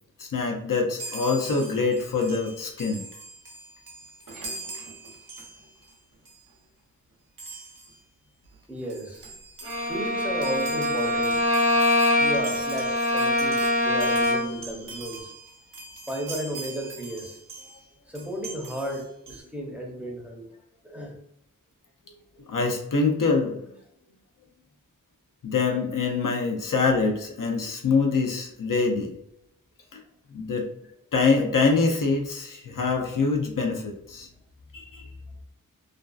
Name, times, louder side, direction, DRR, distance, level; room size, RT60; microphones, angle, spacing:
voice 1, 0.2-3.1 22.5-23.6 25.4-29.2 29.9-30.0 30.3-30.7 31.1-34.3 34.7-35.0, left 4 dB, 70° left, 2 dB, 0.5 m, -25 dB
Chime, 1.0-5.9 6.2-6.5 7.4-8.0 8.5-8.6 8.8-17.8 18.1-19.4, right 2 dB, 70° right, 0.7 m, -42 dB
voice 2, 8.7-9.3 9.8-11.4 12.1-15.3 16.1-17.4 18.1-20.4 20.8-21.2, equal, 5° right, -1 dB, 0.6 m, -34 dB
Bowed string instrument, 9.6-14.6, left 1 dB, 40° right, 0.8 m, -23 dB
2.5 x 2.3 x 2.3 m, 0.74 s
wide cardioid pair, 65°, 34 cm